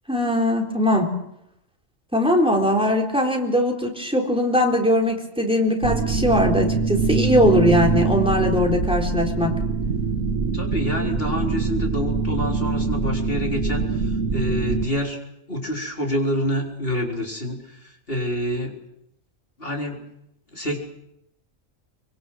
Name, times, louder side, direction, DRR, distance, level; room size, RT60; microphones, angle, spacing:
voice 1, 0.1-1.1 2.1-9.5, left 1 dB, 5° right, 1 dB, 3.9 m, -20 dB
sound 1, 5.8-14.9, right 4 dB, 75° right, 1.8 m, -24 dB
voice 2, 10.4-15.2 15.5-18.8 19.6-20.0 20.5-20.8, equal, 45° left, 0 dB, 4.4 m, -27 dB
25.0 x 24.0 x 6.3 m, 0.80 s
omnidirectional pair, 1.4 m